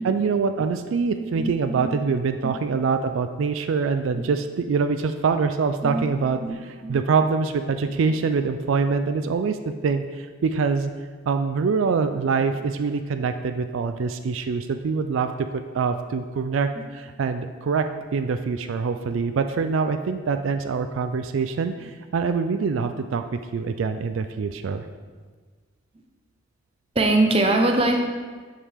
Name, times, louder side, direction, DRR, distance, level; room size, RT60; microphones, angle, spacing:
voice 1, 0.0-9.6 9.8-10.9 11.3-17.8 18.1-24.8, right 5 dB, 80° right, 9 dB, 0.4 m, -24 dB
voice 2, 1.2-2.0 2.4-2.5 4.1-4.2 5.8-6.1 6.4-7.0 26.9-28.1, right 2 dB, 30° right, 3 dB, 0.6 m, -23 dB
7.2 x 6.6 x 3.5 m, 1.5 s
head